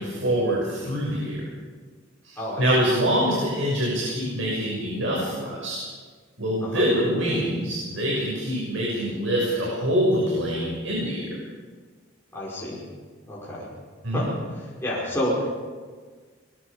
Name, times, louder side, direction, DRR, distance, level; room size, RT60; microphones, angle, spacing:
voice 1, 0.0-1.3 2.2-5.8 6.4-11.4 14.0-14.3, equal, 85° right, -4 dB, 6.4 m, -25 dB
voice 2, 12.3-12.8 13.3-13.7 14.1-14.3 14.8-15.5, left 1 dB, 10° left, -7 dB, 5.4 m, -29 dB
25.5 x 22.5 x 5.1 m, 1.5 s
head